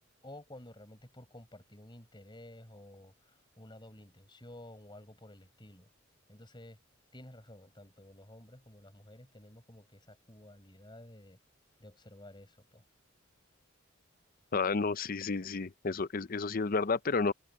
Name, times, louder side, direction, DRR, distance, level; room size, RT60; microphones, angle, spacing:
voice 1, 0.2-5.9 6.3-6.8 7.1-11.4 11.8-12.8, left 1 dB, 20° left, 6.5 m, -52 dB
voice 2, 14.5-17.3, left 4 dB, 45° left, 0.6 m, -31 dB
head